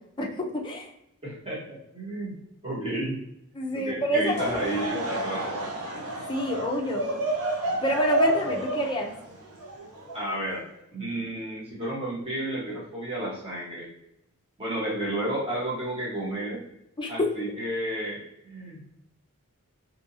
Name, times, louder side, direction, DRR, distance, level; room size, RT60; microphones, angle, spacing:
voice 1, 0.2-0.9 3.5-4.6 4.9-5.4 6.3-7.2 7.8-9.1 17.0-17.1, equal, 20° left, 0 dB, 0.4 m, -28 dB
voice 2, 1.2-2.4 2.6-3.2 3.7-5.6 10.1-10.6 10.9-13.9 14.6-16.6 17.1-18.9, right 1 dB, 25° right, -6 dB, 0.9 m, -32 dB
Laughter / Crowd, 4.2-10.6, right 1 dB, 80° right, 0.7 m, -30 dB
2.7 x 2.6 x 2.6 m, 0.80 s
head